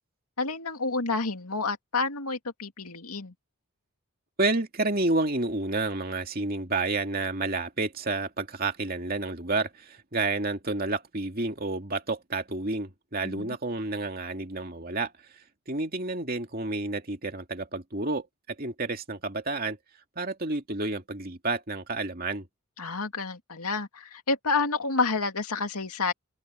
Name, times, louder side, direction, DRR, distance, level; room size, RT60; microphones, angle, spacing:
voice 1, 0.4-3.3 13.2-13.6 22.8-26.1, left 4 dB, 90° left, 2.4 m, -29 dB
voice 2, 4.4-19.8 20.2-22.5, right 2 dB, 40° right, 2.6 m, -30 dB
open air
head